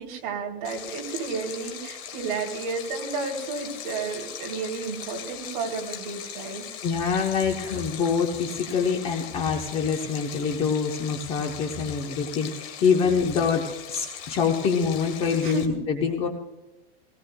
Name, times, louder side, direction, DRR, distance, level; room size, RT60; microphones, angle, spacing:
voice 1, 0.0-6.6 15.4-15.8, right 4 dB, 40° right, 0 dB, 3.2 m, -32 dB
Stream, 0.6-15.7, left 9 dB, 40° left, 2.2 m, -40 dB
voice 2, 6.8-16.3, left 6 dB, 20° left, 3 dB, 0.9 m, -25 dB
18.5 x 18.5 x 2.3 m, 1.0 s
supercardioid pair, 175°, 29 cm